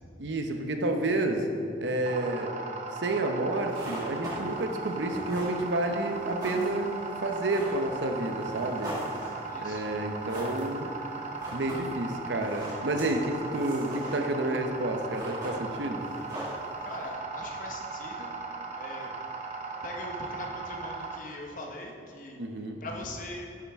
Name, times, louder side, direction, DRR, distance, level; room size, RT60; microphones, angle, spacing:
voice 1, 0.2-1.5 1.8-2.5 2.9-6.9 7.2-9.0 9.6-10.9 11.5-16.1 22.4-22.8, right 2 dB, 80° right, 5 dB, 0.8 m, -30 dB
sound 1, 2.0-21.2, right 4 dB, 40° right, 0.7 m, -38 dB
sound 2, 3.5-17.1, equal, 20° right, 2.0 m, -43 dB
voice 2, 9.5-9.8 16.8-18.3 18.8-19.2 19.8-22.4 22.8-23.5, left 2 dB, 45° left, 1 dB, 1.0 m, -41 dB
8.5 x 7.4 x 3.5 m, 2.5 s
head